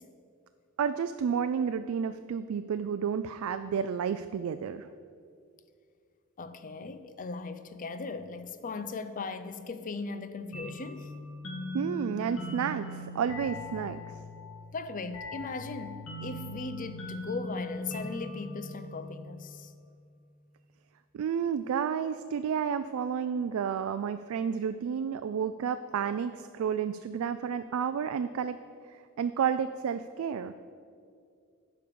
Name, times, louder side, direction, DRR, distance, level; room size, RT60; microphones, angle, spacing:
voice 1, 0.8-4.9 11.7-14.0 21.1-28.6 29.2-30.5, right 7 dB, 85° right, 0.3 m, -31 dB
voice 2, 6.4-11.1 14.7-19.7, left 4 dB, 40° left, 0.5 m, -38 dB
sound 1, 10.5-19.9, left 1 dB, 85° left, 1.7 m, -40 dB
9.3 x 5.2 x 6.8 m
head